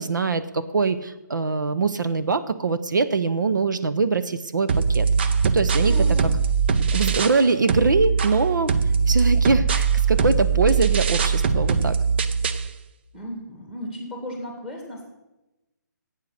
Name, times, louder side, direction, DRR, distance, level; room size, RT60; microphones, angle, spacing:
voice 1, 0.0-5.9 6.9-8.7 9.1-12.0, right 4 dB, 80° right, 11 dB, 0.8 m, -23 dB
sound 1, 4.7-7.4 7.7-12.7, right 5 dB, 35° right, 0.5 m, -21 dB
voice 2, 5.7-6.3 13.1-15.0, equal, 5° right, 1 dB, 2.1 m, -35 dB
11.5 x 8.4 x 6.5 m, 1.0 s
hypercardioid pair, 160°, 10 cm